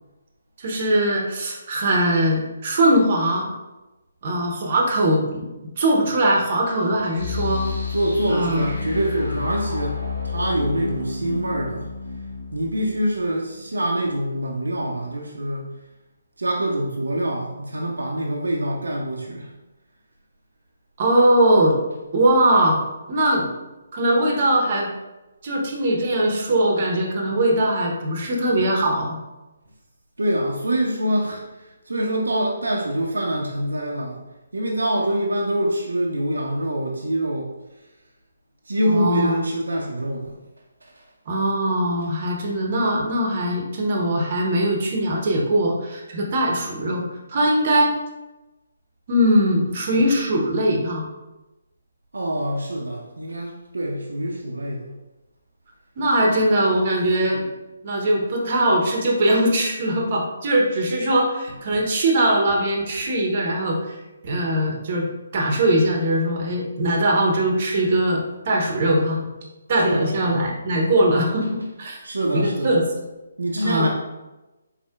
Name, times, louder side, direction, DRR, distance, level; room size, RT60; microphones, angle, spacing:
voice 1, 0.6-3.5 4.2-7.6 8.3-8.6 21.0-21.8 22.1-22.8 23.1-23.5 23.9-24.9 25.4-29.2 38.9-39.4 41.3-47.9 49.1-51.0 56.0-57.5 57.8-64.0 64.2-65.1 65.3-69.2 69.7-72.0 72.3-72.8 73.6-73.9, right 1 dB, 40° right, 0 dB, 0.8 m, -21 dB
sound 1, 7.1-13.9, left 4 dB, 75° left, 1.4 m, -31 dB
voice 2, 7.7-10.0 10.2-11.9 12.5-15.7 16.4-19.5 30.2-31.4 31.9-34.2 34.5-37.5 38.7-40.4 41.0-41.1 52.1-54.9 61.7-61.8 69.8-70.5 71.9-72.8 73.4-73.9, right 1 dB, 70° right, -1 dB, 0.5 m, -25 dB
4.3 x 4.0 x 2.3 m, 1.0 s
figure-of-eight pair, 140°, 0 cm